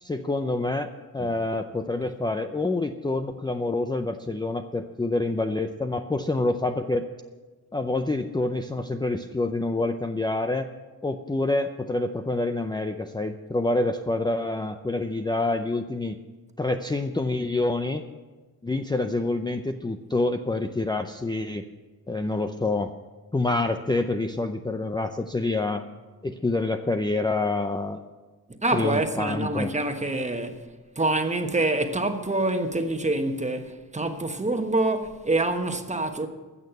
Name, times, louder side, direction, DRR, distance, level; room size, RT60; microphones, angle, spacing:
voice 1, 0.0-7.1 7.7-10.7 11.0-16.2 16.6-18.0 18.6-21.7 22.1-22.9 23.3-25.8 26.2-28.0 28.7-29.7, left 2 dB, 10° left, 0.5 m, -27 dB
voice 2, 28.6-30.7 31.0-36.3, right 2 dB, 20° right, 1.2 m, -26 dB
15.5 x 6.5 x 8.1 m
cardioid pair, 85°, 35 cm